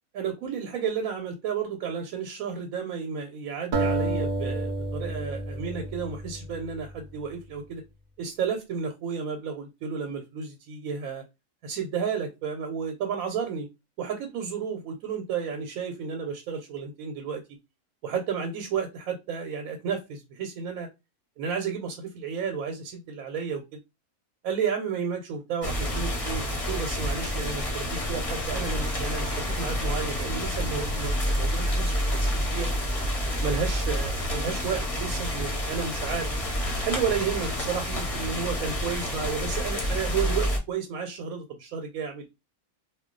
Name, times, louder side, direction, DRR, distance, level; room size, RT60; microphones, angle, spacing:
voice 1, 0.1-7.8 8.2-11.2 11.6-13.7 14.0-17.4 18.0-20.9 21.4-23.6 24.4-32.7 33.4-36.3 36.8-42.3, right 6 dB, 80° right, 1.0 m, -32 dB
sound 1, 3.7-6.9, right 2 dB, 65° right, 0.4 m, -30 dB
sound 2, 25.6-40.6, equal, 35° left, 0.7 m, -28 dB
2.3 x 2.2 x 3.7 m
omnidirectional pair, 1.4 m